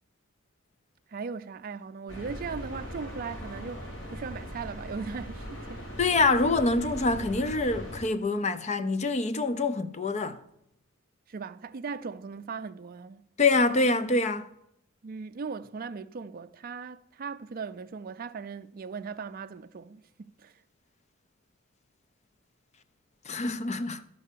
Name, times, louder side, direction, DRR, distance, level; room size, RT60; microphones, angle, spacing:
voice 1, 1.1-5.8 11.3-13.3 15.0-20.5, right 5 dB, 45° right, 0.4 m, -38 dB
sound 1, 2.1-8.0, equal, 80° left, 3.9 m, -40 dB
voice 2, 6.0-10.4 13.4-14.5 23.3-24.0, left 3 dB, 35° left, 0.6 m, -25 dB
12.5 x 5.4 x 6.7 m
head